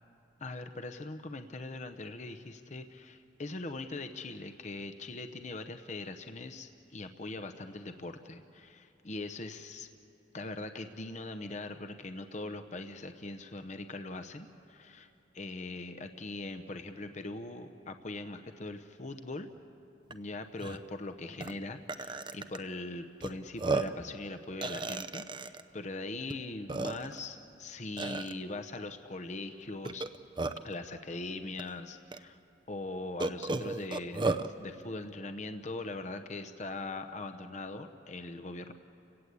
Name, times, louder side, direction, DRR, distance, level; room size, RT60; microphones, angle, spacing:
voice 1, 0.4-9.9 10.3-19.5 20.1-30.1 30.6-32.4 32.7-38.7, left 2 dB, 40° left, 8 dB, 0.8 m, -41 dB
Burping eructation, 20.1-20.2 20.6-20.8 21.4-21.5 21.9-22.6 23.2-23.3 23.6-24.0 24.6-25.6 26.3-26.4 26.7-27.2 28.0-28.3 29.8-30.7 31.6-31.7 32.1-32.2 33.2-34.5, right 3 dB, 25° right, 0.6 m, -33 dB
29.5 x 17.5 x 8.3 m, 2.8 s
head